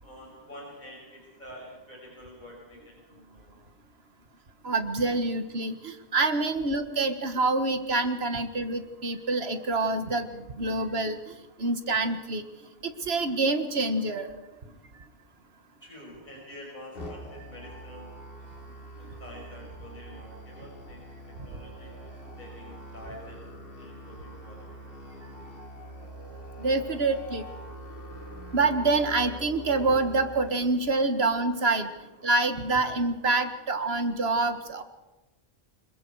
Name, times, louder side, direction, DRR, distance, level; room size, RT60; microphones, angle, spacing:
voice 1, 0.0-3.6 4.9-5.0 15.8-18.1 19.0-22.1 22.4-23.5 23.8-25.2, left 1 dB, 45° left, -3 dB, 5.7 m, -47 dB
voice 2, 4.6-11.3 11.6-12.5 12.8-14.3 26.6-27.5 28.5-31.9 32.2-34.8, right 3 dB, 80° right, 8 dB, 1.7 m, -26 dB
Musical instrument, 16.9-30.5, right 1 dB, 60° left, 2.5 m, -44 dB
26.0 x 21.5 x 4.8 m, 1.1 s
omnidirectional pair, 1.1 m